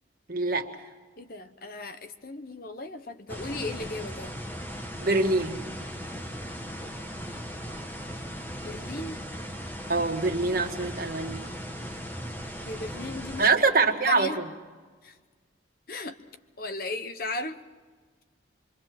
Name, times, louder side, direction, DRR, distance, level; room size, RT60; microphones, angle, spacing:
voice 1, 0.3-0.7 5.0-5.6 9.9-11.4 13.4-14.3, right 3 dB, 50° right, 3 dB, 1.7 m, -24 dB
voice 2, 1.2-4.4 8.6-9.2 12.4-13.5 14.1-14.5 15.0-15.2 15.9-16.2 16.6-17.6, left 2 dB, 50° left, 9 dB, 1.0 m, -36 dB
sound 1, 3.3-13.5, equal, 10° left, 1.2 m, -38 dB
26.0 x 23.0 x 6.0 m, 1.5 s
head